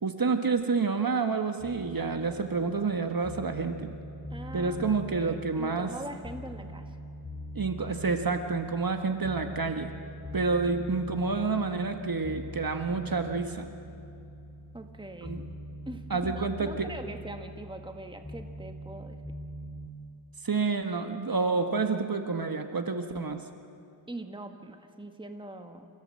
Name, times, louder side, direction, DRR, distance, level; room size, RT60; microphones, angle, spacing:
voice 1, 0.0-3.9 4.5-5.9 7.5-10.0 10.3-13.7 15.2-15.4 16.1-16.9 20.4-23.4, right 4 dB, 45° right, 6 dB, 1.5 m, -29 dB
sound 1, 1.6-19.9, equal, 15° left, 3.0 m, -43 dB
voice 2, 4.3-7.0 14.7-15.3 15.8-19.2 24.1-25.9, right 2 dB, 10° right, 5 dB, 1.6 m, -42 dB
28.0 x 15.5 x 7.8 m, 2.7 s
wide cardioid pair, 80°, 50 cm